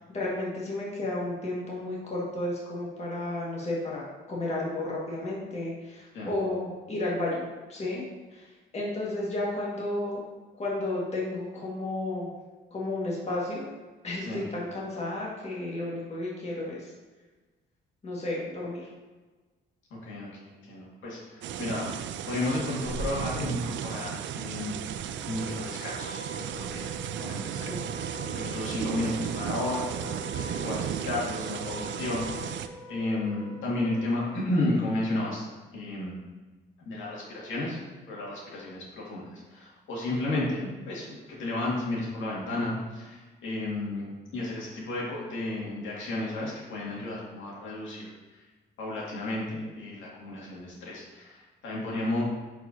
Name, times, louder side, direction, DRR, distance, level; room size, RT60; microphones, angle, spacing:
voice 1, 0.1-8.1 8.3-10.2 10.6-12.3 12.7-13.7 14.0-16.9 18.0-18.9 27.7-27.8, left 2 dB, 35° left, -5 dB, 1.8 m, -32 dB
voice 2, 19.9-21.9 22.3-24.8 25.3-26.9 27.2-27.6 27.9-28.1 28.3-35.4 35.7-36.1 36.8-37.8 38.1-44.1 44.3-48.4 48.8-52.2, left 2 dB, 75° left, -5 dB, 2.2 m, -33 dB
sound 1, 21.4-32.7, right 9 dB, 70° right, 0.4 m, -35 dB
sound 2, 22.8-23.2 24.3-24.4 24.8-25.2 26.4-27.1, right 1 dB, 50° right, 1.1 m, -41 dB
Wind instrument woodwind instrument, 25.1-34.1, left 2 dB, 5° left, 1.9 m, -44 dB
9.8 x 4.7 x 2.8 m, 1.3 s
cardioid pair, 90°, 20 cm